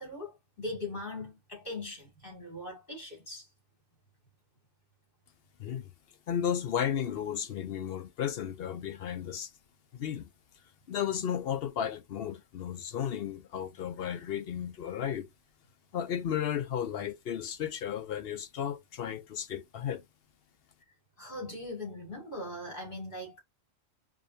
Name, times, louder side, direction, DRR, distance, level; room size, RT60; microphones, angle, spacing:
voice 1, 0.0-3.5 21.2-23.4, left 2 dB, 40° left, 2.8 m, -40 dB
voice 2, 5.6-5.9 6.3-9.5 9.9-10.3 10.9-15.3 15.9-20.0, left 9 dB, 60° left, 0.7 m, -34 dB
4.9 x 2.6 x 2.5 m
omnidirectional pair, 1.3 m